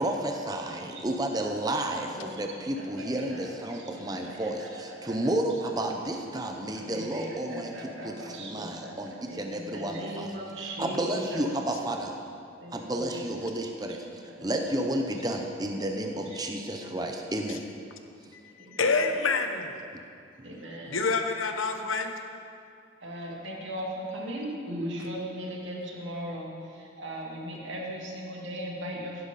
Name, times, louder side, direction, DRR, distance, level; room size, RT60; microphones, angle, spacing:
voice 1, 0.0-10.3 10.6-12.1 12.7-14.0 14.4-17.6 19.9-20.0 20.4-20.5, right 1 dB, 20° right, 3 dB, 0.8 m, -31 dB
voice 2, 0.7-1.6 1.9-2.5 2.8-5.3 5.6-6.0 6.8-11.5 12.6-13.2 13.9-14.4 18.6-18.9 20.4-21.0 23.0-29.2, right 1 dB, 70° right, -2 dB, 2.5 m, -39 dB
voice 3, 18.7-19.8 20.9-22.1, left 4 dB, 90° left, 5 dB, 1.1 m, -27 dB
15.5 x 11.5 x 4.2 m, 2.4 s
head